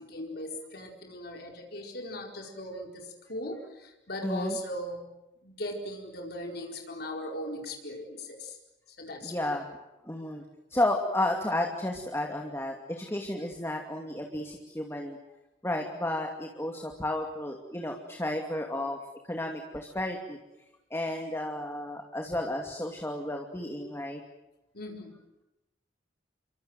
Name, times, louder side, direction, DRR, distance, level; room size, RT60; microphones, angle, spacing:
voice 1, 0.0-5.0 5.4-8.6 8.9-9.5 24.7-25.2, left 1 dB, 60° left, 1 dB, 4.6 m, -39 dB
voice 2, 4.2-4.6 9.2-9.7 10.0-10.4 10.7-15.2 15.6-19.0 19.3-20.4 20.9-24.2, left 1 dB, 15° left, 2 dB, 2.5 m, -32 dB
29.5 x 24.0 x 7.9 m, 0.97 s
head